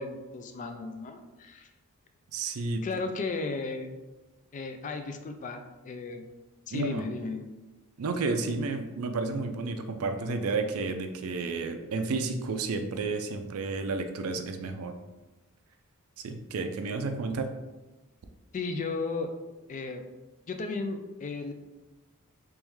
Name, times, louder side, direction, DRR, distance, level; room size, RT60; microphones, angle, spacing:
voice 1, 0.0-1.7 2.8-4.0 4.5-6.3 6.7-7.5 18.5-19.3 19.7-20.0 20.5-21.5, left 3 dB, 35° left, 7 dB, 0.3 m, -35 dB
voice 2, 2.3-2.8 6.7-7.0 8.0-14.9 16.2-17.5, right 3 dB, 70° right, 6 dB, 0.4 m, -31 dB
3.5 x 3.0 x 3.1 m, 1.1 s
head